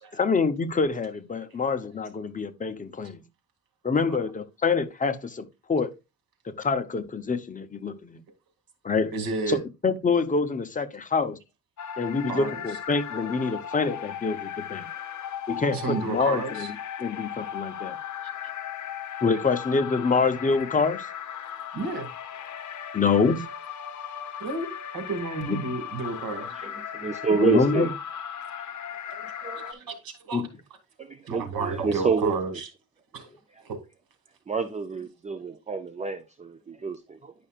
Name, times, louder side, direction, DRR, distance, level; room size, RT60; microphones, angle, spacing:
voice 1, 0.1-3.2 3.8-5.9 6.5-8.2 8.8-9.1 9.5-11.4 12.0-14.9 15.5-18.0 19.2-21.1 22.9-23.5 25.5-25.6 27.3-27.9 30.3-30.5, left 4 dB, 25° left, 0.7 m, -26 dB
voice 2, 9.1-9.6 12.3-12.6 15.7-16.7 21.7-22.1 24.4-24.7 24.9-26.5 29.7-30.4 31.3-32.7 33.1-33.3 33.6-33.8, right 4 dB, 80° right, 2.2 m, -31 dB
sound 1, 11.8-29.7, left 9 dB, 55° left, 0.9 m, -37 dB
voice 3, 26.4-27.9 29.4-29.8 31.0-32.4 34.5-37.3, right 5 dB, 20° right, 0.5 m, -28 dB
10.5 x 5.5 x 2.4 m
cardioid pair, 140°, 35 cm